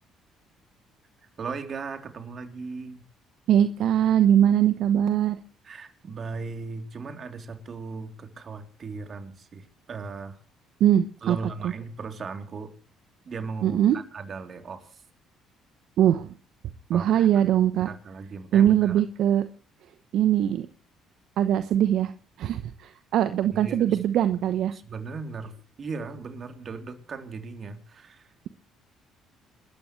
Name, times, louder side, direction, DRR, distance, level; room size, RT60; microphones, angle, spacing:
voice 1, 1.4-3.0 5.6-10.4 11.2-12.7 13.2-15.0 16.9-17.3 17.8-19.0 23.5-24.0 24.7-28.3, right 4 dB, 45° right, 6 dB, 3.4 m, -37 dB
voice 2, 3.5-5.4 10.8-11.4 11.6-11.7 13.6-14.0 16.0-16.3 16.9-17.9 18.5-19.5 20.1-20.7 21.4-22.1 22.4-24.7, right 10 dB, 70° right, 11 dB, 0.9 m, -21 dB
28.0 x 13.5 x 3.2 m, 0.38 s
supercardioid pair, 65°, 0 cm